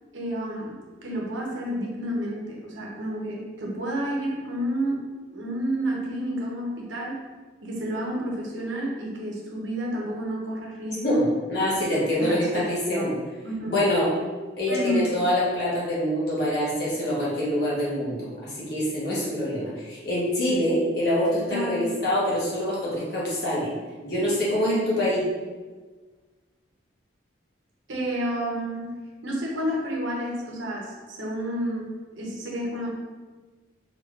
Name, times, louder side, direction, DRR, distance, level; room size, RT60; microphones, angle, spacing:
voice 1, 0.1-0.8 1.0-7.2 7.6-11.2 12.2-13.1 13.4-13.7 14.7-15.1 21.5-21.9 27.9-28.9 29.2-31.9 32.1-32.9, equal, 80° right, -2 dB, 0.9 m, -30 dB
voice 2, 11.5-13.1 13.7-14.1 14.6-23.7 24.0-25.2, left 1 dB, 55° left, -7 dB, 1.2 m, -25 dB
3.7 x 3.6 x 2.5 m, 1.3 s
head